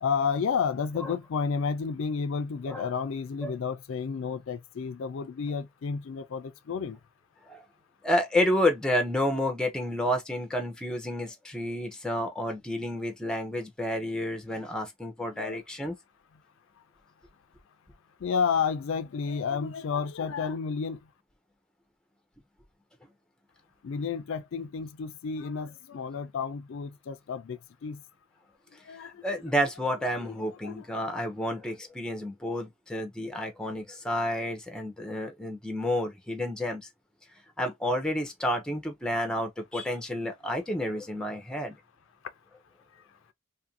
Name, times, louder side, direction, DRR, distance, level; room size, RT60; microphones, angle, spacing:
voice 1, 0.0-7.0 15.3-15.6 18.2-21.0 23.8-28.0 28.9-29.2 30.6-30.9 31.1-31.3, left 6 dB, 65° left, 0.4 m, -31 dB
voice 2, 8.0-15.9 29.2-36.9 37.6-41.8, left 1 dB, 5° left, 0.5 m, -30 dB
2.6 x 2.5 x 2.6 m
head